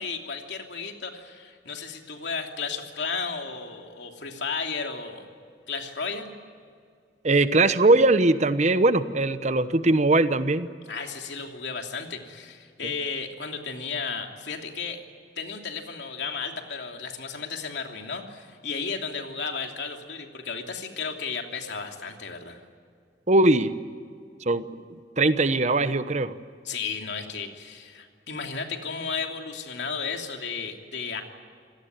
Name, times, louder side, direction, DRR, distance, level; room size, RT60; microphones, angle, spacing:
voice 1, 0.0-5.3 5.7-6.3 10.9-15.0 15.4-22.6 26.6-31.2, left 5 dB, 80° left, 3 dB, 3.0 m, -34 dB
voice 2, 7.2-10.7 23.3-23.7 24.4-24.6 24.9-26.3, right 2 dB, 40° right, 12 dB, 1.0 m, -21 dB
26.5 x 18.0 x 9.2 m, 2.2 s
head